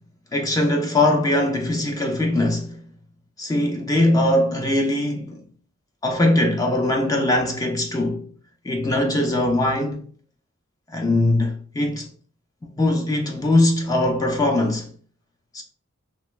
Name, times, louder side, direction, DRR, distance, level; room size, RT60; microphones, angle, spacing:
voice 1, 0.3-2.8 3.4-5.4 6.0-8.2 8.6-10.0 10.9-12.1 12.8-14.9 15.5-15.6, left 1 dB, 15° left, 0.4 m, -21 dB
3.1 x 2.2 x 3.0 m
head